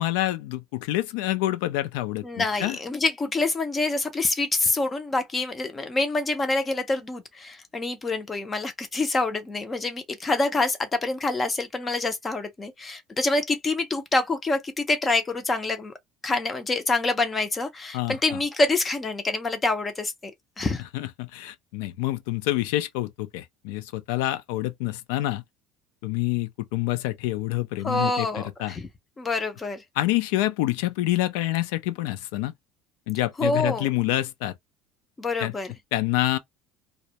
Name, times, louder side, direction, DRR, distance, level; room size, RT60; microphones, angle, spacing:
voice 1, 0.0-2.8 17.9-18.2 20.9-25.4 26.0-28.3 28.6-28.8 30.0-32.5 33.1-34.5 35.4-35.5 35.9-36.4, left 16 dB, 85° left, 0.4 m, -27 dB
voice 2, 2.2-15.9 16.2-20.3 20.6-20.8 27.8-28.9 29.2-29.8 33.4-33.9 35.2-35.7, left 2 dB, 15° left, 0.4 m, -26 dB
2.2 x 2.1 x 2.7 m
cardioid pair, 150°, 0 cm